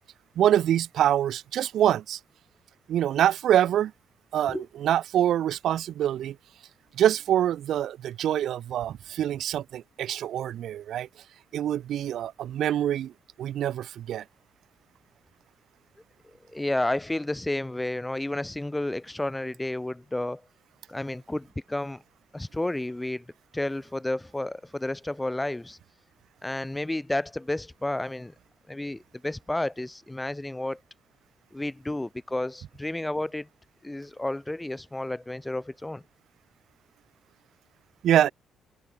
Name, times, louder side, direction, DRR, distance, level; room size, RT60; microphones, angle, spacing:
voice 1, 0.4-2.2 2.9-3.9 4.3-6.4 7.0-11.1 11.5-13.1 13.4-14.2 38.0-38.3, right 11 dB, 75° right, 1.1 m, -25 dB
voice 2, 16.2-20.4 20.9-22.0 22.3-23.3 23.5-25.8 26.4-28.3 28.7-30.8 31.5-33.5 33.8-36.0, left 1 dB, 10° left, 1.6 m, -31 dB
cardioid pair, 90°, 0 cm